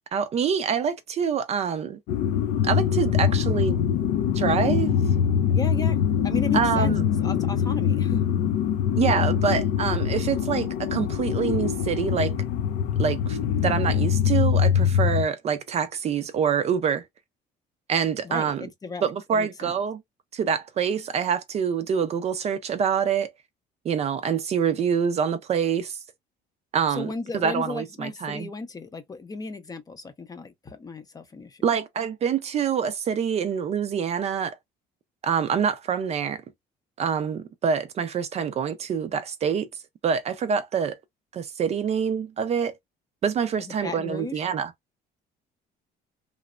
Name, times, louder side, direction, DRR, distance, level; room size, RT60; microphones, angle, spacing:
voice 1, 0.1-2.0 2.6-3.8 4.3-5.0 6.5-7.0 9.0-12.3 13.0-17.0 17.9-18.7 19.0-20.0 20.3-23.3 23.8-26.0 26.7-28.5 31.6-34.6 35.2-36.4 37.0-39.7 40.0-41.0 41.3-42.7 43.2-44.7, right 7 dB, 35° right, 0.4 m, -26 dB
sound 1, 2.1-15.3, left 8 dB, 80° left, 0.5 m, -23 dB
voice 2, 5.5-6.9 7.2-8.2 18.2-19.7 27.0-31.7 43.6-44.4, left 4 dB, 20° left, 0.5 m, -35 dB
3.0 x 2.0 x 2.3 m
cardioid pair, 135°, 18 cm